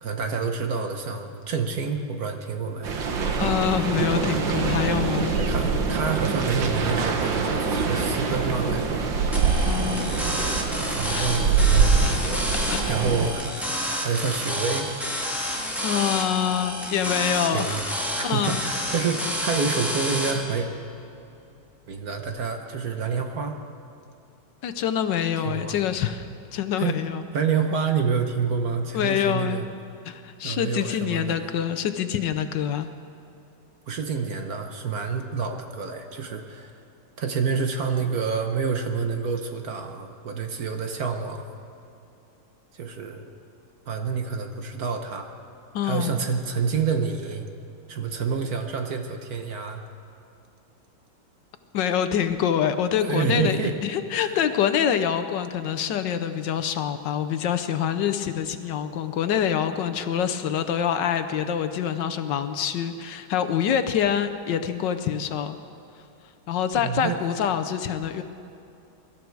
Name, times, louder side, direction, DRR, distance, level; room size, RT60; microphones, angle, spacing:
voice 1, 0.0-2.9 5.5-9.0 10.9-12.4 12.9-14.9 17.5-17.8 18.2-20.7 21.9-23.6 25.4-25.8 26.8-27.0 27.3-29.6 30.4-31.4 33.9-36.7 37.2-41.5 42.7-43.3 43.9-45.3 45.8-47.5 47.9-49.8 53.0-53.7 54.1-54.3 66.8-67.2, right 5 dB, 55° right, 5 dB, 1.4 m, -28 dB
sound 1, 2.8-13.3, right 5 dB, 75° right, 2.0 m, -24 dB
voice 2, 3.4-5.4 9.6-10.2 11.1-11.4 12.7-12.9 15.8-17.8 18.2-18.6 24.6-26.2 26.5-27.2 28.9-29.6 30.0-32.9 45.7-46.1 51.7-65.6 66.5-68.2, left 9 dB, 70° left, 10 dB, 1.3 m, -26 dB
sound 2, 9.3-20.3, equal, ahead, 2.0 m, -29 dB
23.5 x 12.5 x 4.7 m, 2.7 s
omnidirectional pair, 2.1 m